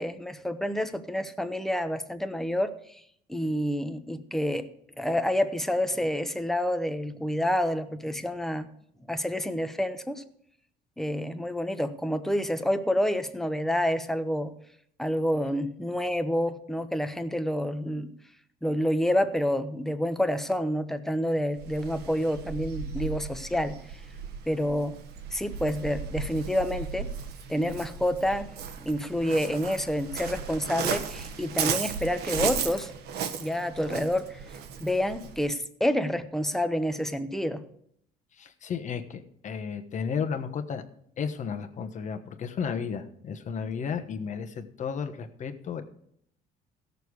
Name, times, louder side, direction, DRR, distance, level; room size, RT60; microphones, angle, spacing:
voice 1, 0.0-3.0 3.3-4.7 5.0-8.7 9.1-10.2 11.0-14.5 15.0-18.1 18.6-23.8 24.5-25.0 25.3-27.1 27.5-32.9 33.4-34.4 34.8-37.6, equal, ahead, 8 dB, 0.9 m, -28 dB
Waves surf, 21.6-35.4, right 6 dB, 70° right, 1.2 m, -35 dB
voice 2, 38.3-40.8 41.2-45.8, left 6 dB, 45° left, 8 dB, 1.2 m, -33 dB
16.5 x 6.7 x 4.8 m, 0.70 s
cardioid pair, 110°, 17 cm